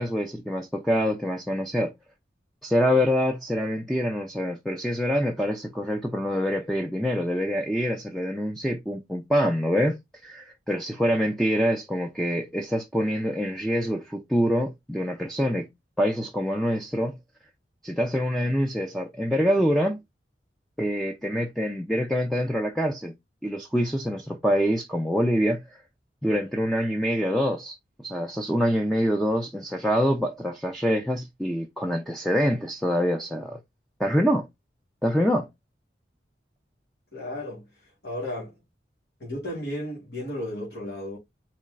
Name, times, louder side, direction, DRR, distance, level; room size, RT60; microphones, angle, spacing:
voice 1, 0.0-1.9 2.6-15.7 16.0-17.2 17.8-20.0 20.8-23.1 23.4-25.6 26.2-27.8 28.0-33.6 34.0-34.5 35.0-35.5, equal, ahead, 0.5 m, -25 dB
voice 2, 37.1-38.6 39.2-41.2, left 1 dB, 65° left, 2.4 m, -34 dB
4.4 x 3.1 x 3.8 m
head